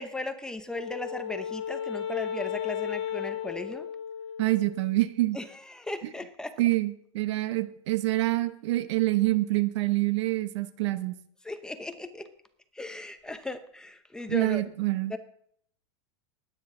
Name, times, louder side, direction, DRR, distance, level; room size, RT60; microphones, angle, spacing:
voice 1, 0.0-3.9 5.3-6.5 11.4-12.3 12.7-14.6 15.1-15.2, left 2 dB, 5° left, 8 dB, 0.7 m, -37 dB
Wind instrument woodwind instrument, 0.7-5.1, left 9 dB, 75° left, 1.5 m, -35 dB
voice 2, 4.4-5.4 6.6-11.1 14.3-15.1, right 18 dB, 65° right, 13 dB, 1.0 m, -26 dB
20.5 x 9.4 x 3.8 m, 0.67 s
supercardioid pair, 155°, 16 cm